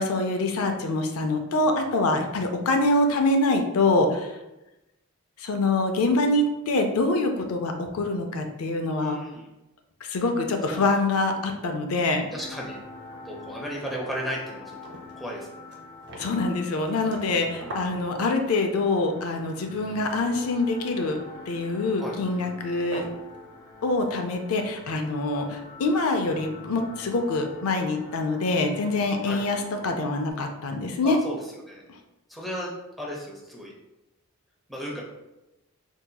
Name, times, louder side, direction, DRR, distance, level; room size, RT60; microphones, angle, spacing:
voice 1, 0.0-4.4 5.4-9.2 10.0-12.3 16.2-21.2 21.5-23.1 23.8-31.2, left 2 dB, 75° left, 4 dB, 0.4 m, -25 dB
voice 2, 9.0-9.5 10.7-10.9 12.3-12.8 13.2-15.5 16.9-17.2 17.6-17.8 22.0-22.2 29.2-29.4 31.0-31.4 31.7-31.8 32.3-33.7 34.7-35.0, equal, ahead, -4 dB, 0.5 m, -35 dB
sound 1, 12.4-30.3, left 4 dB, 50° left, 1.1 m, -45 dB
sound 2, 12.7-13.4 13.7-13.8 14.2-14.3 14.5-18.8 19.7-20.4 20.8-21.0 22.1-22.2 22.8-23.5 23.9-24.0, equal, 55° right, 0.6 m, -43 dB
4.1 x 2.7 x 2.2 m, 0.97 s
head